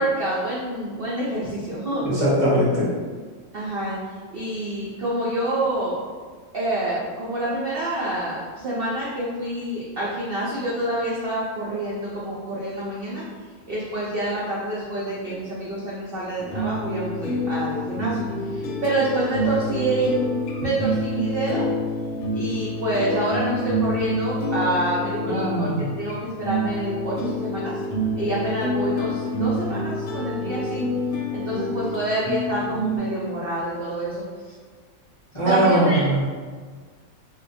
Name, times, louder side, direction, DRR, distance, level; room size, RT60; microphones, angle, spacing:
voice 1, 0.0-2.0 3.5-4.0 4.3-6.0 6.5-13.2 13.7-20.2 20.6-21.6 22.3-27.8 28.1-30.8 31.3-34.2 35.4-36.0, right 1 dB, 70° right, -7 dB, 0.5 m, -27 dB
voice 2, 2.0-2.9 25.2-25.9 35.3-36.3, right 1 dB, 35° left, -11 dB, 0.6 m, -20 dB
sound 1, 16.4-33.0, equal, 70° left, 0.9 m, -27 dB
2.6 x 2.1 x 4.0 m, 1.5 s
omnidirectional pair, 1.7 m